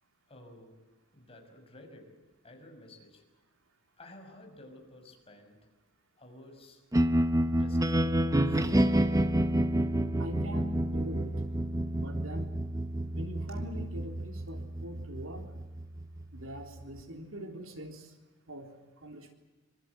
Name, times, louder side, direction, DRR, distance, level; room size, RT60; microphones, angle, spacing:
voice 1, 0.3-3.3 4.0-5.7 6.2-6.8 7.4-8.8, left 1 dB, 30° left, 3 dB, 6.0 m, -53 dB
sound 1, 6.9-17.0, right 1 dB, 15° right, 0.9 m, -29 dB
voice 2, 10.2-11.4 12.0-12.5 13.1-15.5 16.3-18.1 18.5-18.7 19.0-19.3, equal, 70° right, 4 dB, 3.5 m, -43 dB
25.5 x 25.0 x 8.1 m, 1.1 s
head